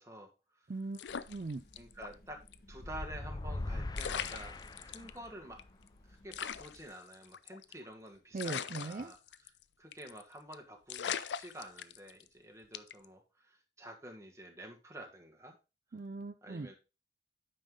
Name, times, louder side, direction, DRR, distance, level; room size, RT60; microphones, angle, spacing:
voice 1, 0.0-0.7 1.8-2.4 2.7-5.6 6.0-9.2 9.4-9.5 9.8-15.5 16.4-16.7, right 1 dB, 15° right, 3 dB, 1.4 m, -49 dB
voice 2, 0.7-1.6 8.3-9.1 15.9-16.7, right 3 dB, 50° right, 9 dB, 0.4 m, -40 dB
sound 1, 0.9-2.1 2.5-2.6 3.6-3.7 3.9-5.1 5.6-5.7 5.9-6.0 6.3-7.9 8.4-9.6 9.9-10.2 10.5-10.6 10.9-12.3 12.7-13.1, left 8 dB, 90° left, 0.5 m, -40 dB
sound 2, 1.1-6.9, left 1 dB, 55° left, 1.5 m, -60 dB
sound 3, 2.7-5.3, left 2 dB, 25° left, 0.4 m, -40 dB
9.1 x 5.4 x 3.7 m, 0.30 s
head